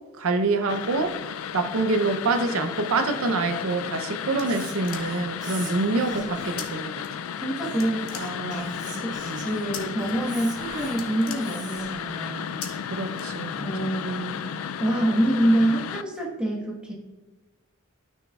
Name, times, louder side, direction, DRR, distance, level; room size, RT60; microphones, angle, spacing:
voice 1, 0.2-1.2 1.5-6.9 8.9-9.4 12.9-13.7, right 3 dB, 70° right, 7 dB, 0.6 m, -26 dB
sound 1, 0.7-16.0, left 8 dB, 70° left, 0.3 m, -34 dB
sound 2, 4.1-5.4 6.6-6.7 7.0-7.5 7.8-8.8 9.7-10.1 10.5-10.6 10.9-12.0 12.6-12.7 13.1-13.8, left 6 dB, 90° left, 1.1 m, -40 dB
Whispering, 4.4-6.7 7.6-12.0, right 3 dB, 40° right, 1.4 m, -42 dB
voice 2, 7.0-12.5 13.6-16.9, right 1 dB, 5° right, -3 dB, 1.2 m, -27 dB
12.5 x 6.2 x 2.3 m, 1.2 s
head